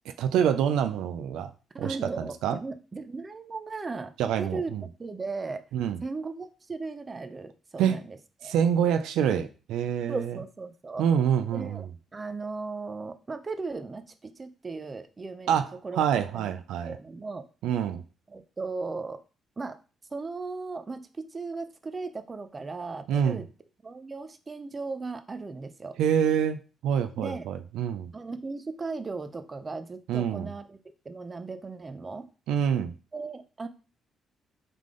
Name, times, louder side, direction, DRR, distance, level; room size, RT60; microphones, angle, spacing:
voice 1, 0.2-1.5 1.8-2.6 4.2-4.8 5.7-6.0 7.8-8.0 8.4-10.4 11.0-11.9 15.5-15.7 16.0-17.0 17.6-18.0 23.1-23.4 26.0-28.1 30.1-30.5 32.5-32.9, right 8 dB, 85° right, 9 dB, 0.4 m, -26 dB
voice 2, 1.7-4.1 4.4-5.6 6.0-8.5 10.1-11.1 11.5-11.9 12.1-16.0 16.3-16.5 16.8-17.5 18.3-19.2 19.6-19.8 20.1-23.5 23.8-26.0 27.2-27.5 28.1-30.8 31.1-32.3 33.1-33.7, right 3 dB, 30° right, 10 dB, 0.5 m, -37 dB
3.7 x 3.3 x 3.7 m, 0.34 s
cardioid pair, 90°, 0 cm